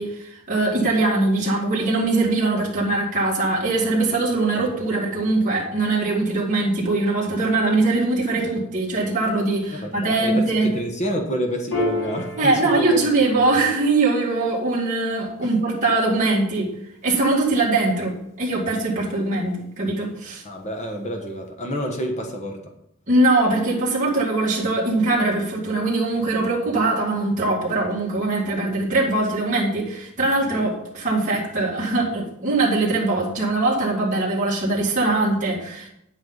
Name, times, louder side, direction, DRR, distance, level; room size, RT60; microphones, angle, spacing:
voice 1, 0.0-10.7 12.4-16.7 17.0-20.4 23.1-35.9, right 2 dB, 35° right, -6 dB, 2.2 m, -22 dB
voice 2, 9.7-13.1 15.4-15.5 20.4-22.6, equal, 30° left, 3 dB, 1.2 m, -28 dB
Piano, 11.7-18.6, left 1 dB, 75° left, 3.4 m, -34 dB
9.2 x 8.0 x 4.0 m, 0.77 s
head